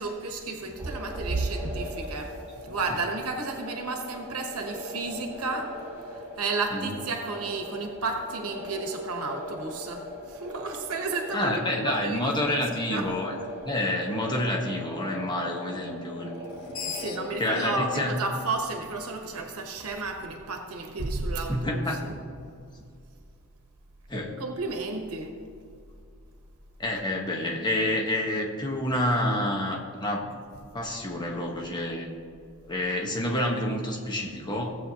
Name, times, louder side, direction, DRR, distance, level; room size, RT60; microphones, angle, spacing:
voice 1, 0.0-2.4 2.6-12.6 12.9-13.1 16.9-22.2 24.4-25.4, right 3 dB, 80° right, 3 dB, 1.1 m, -32 dB
sound 1, 0.8-17.3, left 1 dB, 10° right, 2.5 m, -40 dB
voice 2, 11.3-13.3 13.6-16.3 17.4-18.2 21.5-22.0 24.1-24.4 26.8-30.2 30.7-32.1 32.6-34.8, left 1 dB, 20° left, -1 dB, 1.2 m, -28 dB
Screech, 16.4-19.6, left 5 dB, 70° left, 1.0 m, -40 dB
16.0 x 7.8 x 2.9 m, 2.4 s
head